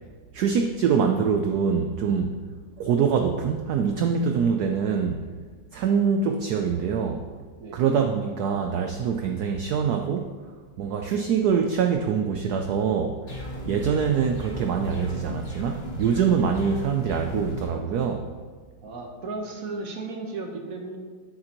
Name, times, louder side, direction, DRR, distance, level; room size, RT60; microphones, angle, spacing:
voice 1, 0.3-2.4 2.8-5.2 5.7-7.3 7.7-10.4 10.8-13.4 13.7-18.3, right 6 dB, 85° right, 5 dB, 0.8 m, -24 dB
sound 1, 13.3-17.7, left 1 dB, 80° left, 2.9 m, -35 dB
voice 2, 18.8-21.0, right 3 dB, 55° right, 3 dB, 1.1 m, -35 dB
9.3 x 7.7 x 2.9 m, 1.5 s
omnidirectional pair, 2.2 m